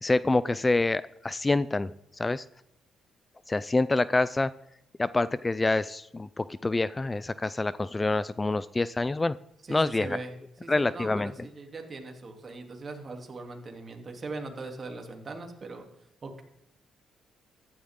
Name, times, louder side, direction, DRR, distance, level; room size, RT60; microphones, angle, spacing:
voice 1, 0.0-2.4 3.5-4.5 5.0-9.4 9.7-10.2 10.7-11.3, left 2 dB, 20° left, 17 dB, 0.4 m, -26 dB
voice 2, 9.6-10.3 10.6-15.9 16.2-16.4, right 3 dB, 40° right, 3 dB, 3.0 m, -40 dB
15.0 x 12.0 x 3.8 m, 0.83 s
cardioid pair, 90°, 0 cm